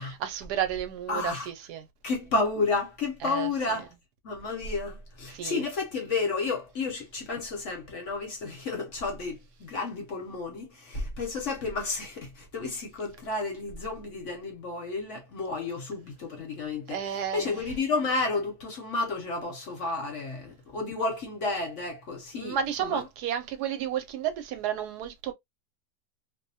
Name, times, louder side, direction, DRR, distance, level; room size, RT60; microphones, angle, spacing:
voice 1, 0.0-1.9 3.2-3.8 5.3-5.6 16.9-17.6 22.3-25.3, right 9 dB, 75° right, 1.1 m, -32 dB
voice 2, 1.1-1.5 2.0-3.9 4.2-23.0, left 3 dB, 60° left, 0.9 m, -31 dB
2.6 x 2.1 x 2.6 m
omnidirectional pair, 1.8 m